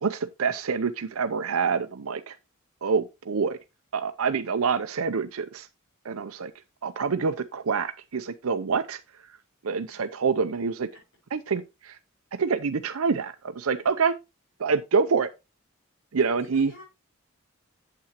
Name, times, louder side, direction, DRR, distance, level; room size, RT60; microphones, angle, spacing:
voice 1, 0.0-2.4 2.8-3.6 3.9-5.7 6.0-6.5 6.8-9.0 9.6-10.9 11.3-12.0 12.3-14.1 14.6-15.3 16.1-16.7, right 5 dB, 85° right, 0.6 m, -26 dB
voice 2, 16.2-16.8, left 1 dB, 75° left, 5.5 m, -48 dB
8.7 x 7.6 x 2.9 m
head